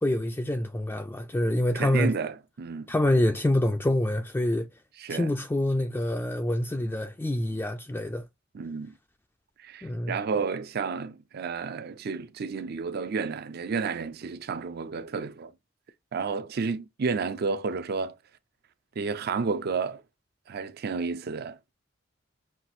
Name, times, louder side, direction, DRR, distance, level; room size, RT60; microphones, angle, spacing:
voice 1, 0.0-2.1 2.9-4.7 5.1-8.2 9.8-10.2, left 1 dB, 10° left, 0.3 m, -26 dB
voice 2, 1.7-2.9 5.0-5.3 8.5-9.0 9.6-15.5 16.1-18.2 19.0-20.0 20.5-21.7, right 5 dB, 55° right, 0.5 m, -31 dB
5.8 x 2.5 x 2.5 m
head